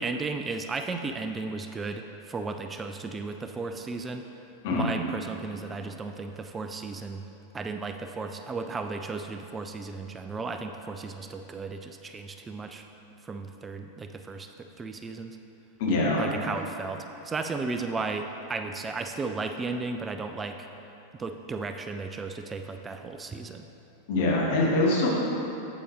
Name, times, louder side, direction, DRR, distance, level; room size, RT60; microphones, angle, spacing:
voice 1, 0.0-4.3 4.7-7.2 7.5-12.8 13.2-15.4 16.2-20.6 21.2-23.7, right 3 dB, 15° right, 6 dB, 0.3 m, -35 dB
voice 2, 15.8-16.2 24.1-25.1, left 2 dB, 55° left, -3 dB, 1.5 m, -24 dB
8.6 x 8.2 x 3.1 m, 2.9 s
figure-of-eight pair, 90°, 0 cm